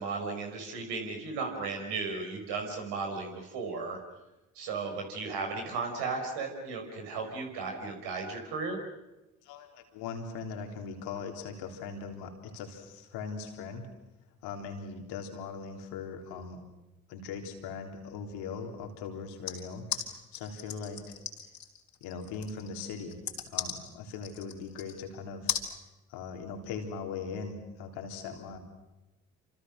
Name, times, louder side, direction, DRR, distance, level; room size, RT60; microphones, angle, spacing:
voice 1, 0.0-4.0 4.5-8.8, right 4 dB, 70° right, 3 dB, 5.3 m, -35 dB
voice 2, 9.4-13.9 14.4-16.6 17.1-21.2 22.0-23.2 23.5-25.6 26.1-28.6, left 5 dB, 70° left, 4 dB, 3.6 m, -40 dB
sound 1, 19.5-25.0 25.5-25.7, left 8 dB, 55° left, 3.8 m, -36 dB
29.0 x 26.5 x 6.4 m, 1.0 s
figure-of-eight pair, 40°, 41 cm